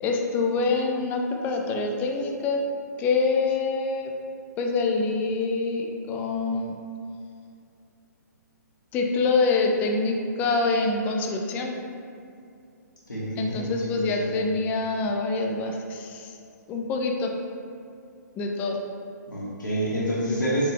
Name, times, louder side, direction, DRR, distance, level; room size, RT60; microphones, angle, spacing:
voice 1, 0.0-2.6 3.0-4.1 4.6-6.8 8.9-11.7 13.4-16.4 16.7-17.3 18.4-18.8, left 3 dB, 15° left, 2 dB, 0.3 m, -25 dB
voice 2, 13.1-14.3 19.3-20.7, equal, 85° left, -7 dB, 0.9 m, -28 dB
4.6 x 2.3 x 3.2 m, 2.4 s
figure-of-eight pair, 130°, 10 cm